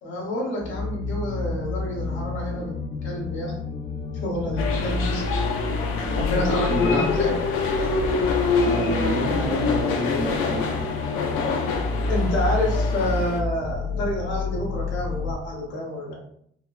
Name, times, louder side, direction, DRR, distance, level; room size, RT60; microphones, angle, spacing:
voice 1, 0.0-3.5 4.2-5.3 6.1-7.3 12.1-16.1, left 1 dB, 65° left, -3 dB, 1.2 m, -29 dB
sound 1, 0.6-15.3, left 3 dB, 50° left, 0.9 m, -29 dB
sound 2, 4.6-13.4, left 4 dB, 85° left, 0.6 m, -26 dB
voice 2, 6.7-7.2 8.6-10.7, equal, 5° right, -4 dB, 0.5 m, -29 dB
4.2 x 2.0 x 2.4 m, 0.68 s
cardioid pair, 165°, 21 cm